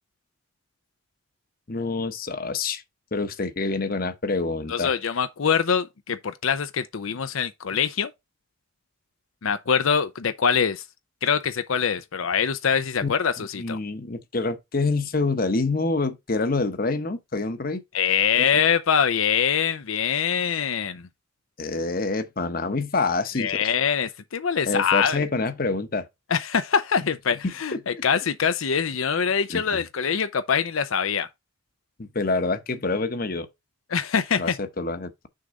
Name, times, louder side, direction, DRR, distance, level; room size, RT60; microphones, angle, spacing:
voice 1, 1.7-2.8 3.1-4.9 13.0-17.8 18.4-18.5 21.6-23.7 24.6-26.1 27.7-28.0 29.5-29.8 32.0-33.5 34.4-35.3, left 3 dB, 45° left, 0.9 m, -27 dB
voice 2, 4.7-8.1 9.4-10.8 11.2-13.8 17.9-21.1 23.4-25.3 26.3-31.3 33.9-34.6, left 7 dB, 80° left, 0.6 m, -24 dB
6.5 x 3.7 x 5.2 m
head